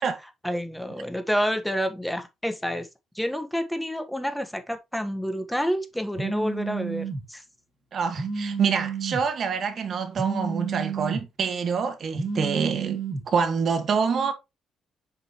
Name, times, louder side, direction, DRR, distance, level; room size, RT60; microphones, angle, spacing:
voice 1, 0.4-2.9 3.1-7.4, equal, 5° left, 1.3 m, -29 dB
Telephone, 6.2-7.2 8.2-9.2 10.2-11.2 12.2-13.2, right 5 dB, 35° right, 2.9 m, -30 dB
voice 2, 7.9-13.0 13.3-14.3, right 6 dB, 55° right, 1.6 m, -26 dB
7.4 x 5.2 x 3.0 m
cardioid pair, 90°, 0 cm